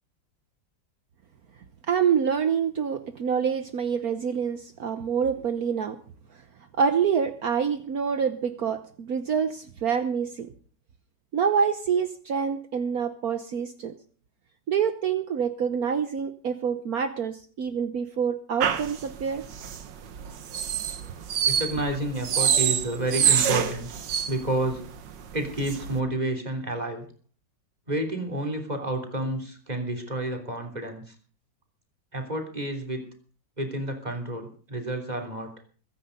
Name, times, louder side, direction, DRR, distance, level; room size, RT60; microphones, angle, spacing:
voice 1, 1.9-6.0 6.8-10.5 11.3-13.9 14.7-19.4, right 7 dB, 60° right, 10 dB, 1.3 m, -26 dB
sound 1, 18.6-26.0, right 8 dB, 80° right, 1.9 m, -27 dB
voice 2, 21.4-23.9 24.3-24.8 25.3-27.1 27.9-31.2 32.1-33.0 33.6-35.5, right 1 dB, 20° right, 4 dB, 3.4 m, -30 dB
22.0 x 10.0 x 5.3 m, 0.43 s
omnidirectional pair, 1.9 m